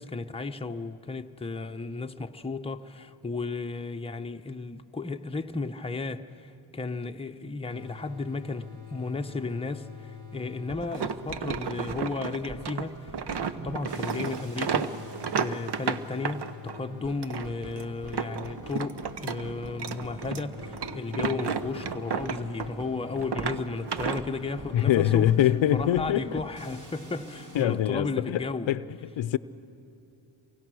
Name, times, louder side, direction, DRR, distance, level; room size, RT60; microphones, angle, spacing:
voice 1, 0.0-13.1 13.6-15.0 15.3-25.3 25.7-28.7, left 3 dB, 10° left, 0.8 m, -34 dB
sound 1, 7.7-27.6, left 2 dB, 40° right, 2.9 m, -44 dB
sound 2, 10.8-16.8 17.2-19.4 19.7-22.8 23.1-24.2, right 6 dB, 60° right, 1.0 m, -32 dB
sound 3, 13.5-14.4 15.4-15.7 16.2-22.6, right 3 dB, 85° right, 2.3 m, -49 dB
voice 2, 24.7-26.4 27.5-28.8 29.2-29.4, left 12 dB, 70° left, 0.7 m, -24 dB
28.5 x 23.5 x 6.3 m
cardioid pair, 70°, 46 cm